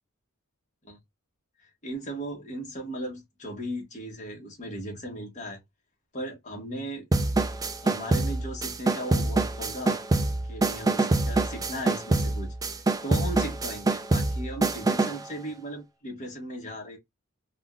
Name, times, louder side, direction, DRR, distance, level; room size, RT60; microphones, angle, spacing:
voice 1, 1.6-5.6 6.1-7.0 7.8-10.0 10.5-12.5 13.0-17.0, right 1 dB, 35° left, 1.3 m, -37 dB
sound 1, 7.1-15.2, right 2 dB, 15° right, 0.3 m, -26 dB
3.6 x 2.3 x 2.3 m
head